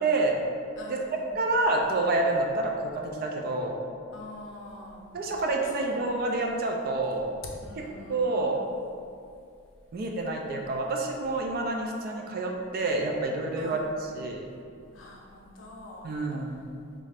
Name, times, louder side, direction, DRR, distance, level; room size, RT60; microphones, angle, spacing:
voice 1, 0.0-0.4 0.9-1.0 1.4-3.8 5.1-7.3 8.1-8.6 9.9-13.8 14.1-14.5 16.0-16.6, right 2 dB, 45° right, 1 dB, 0.3 m, -28 dB
voice 2, 0.8-1.3 4.1-5.0 5.7-5.9 7.4-8.5 13.6-13.9 14.9-16.1, left 2 dB, 60° left, -1 dB, 0.5 m, -44 dB
3.1 x 2.4 x 3.4 m, 2.3 s
head